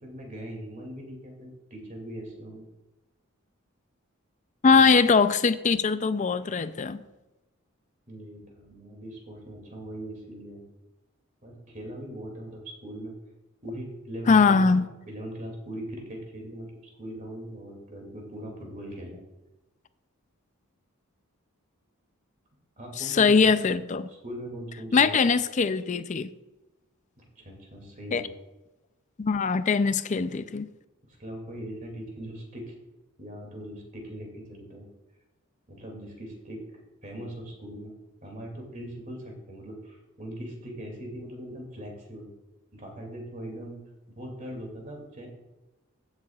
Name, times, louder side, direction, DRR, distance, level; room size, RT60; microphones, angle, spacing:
voice 1, 0.0-2.6 4.7-4.8 8.1-10.6 11.4-13.1 13.6-14.7 15.1-16.7 17.0-19.2 22.8-23.6 24.1-25.2 27.2-28.3 31.1-32.7 33.2-34.9 35.7-37.9 38.2-42.3 42.7-43.8 44.1-45.3, equal, 35° right, 1 dB, 2.5 m, -40 dB
voice 2, 4.6-7.0 14.3-14.9 23.0-24.1 24.9-26.3 28.1-28.2 29.2-30.7, left 5 dB, 35° left, 12 dB, 0.4 m, -21 dB
15.5 x 7.5 x 2.4 m, 1.0 s
head